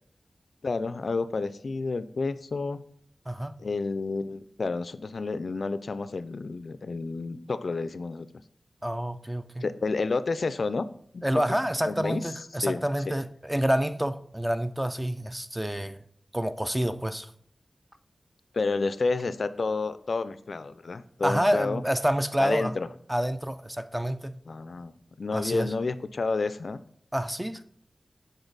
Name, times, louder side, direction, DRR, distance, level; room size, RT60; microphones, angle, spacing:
voice 1, 0.6-2.8 3.6-8.3 9.6-10.9 11.1-11.2 11.9-12.3 12.6-12.8 18.5-21.8 22.4-22.9 24.5-24.9 25.2-26.8, left 3 dB, 65° left, 0.3 m, -30 dB
voice 2, 8.8-9.7 11.2-16.0 16.3-17.3 21.2-22.8 23.1-24.4 25.3-25.7 27.1-27.6, equal, 10° right, 0.4 m, -28 dB
7.0 x 3.8 x 3.9 m
wide cardioid pair, 90°, 0 cm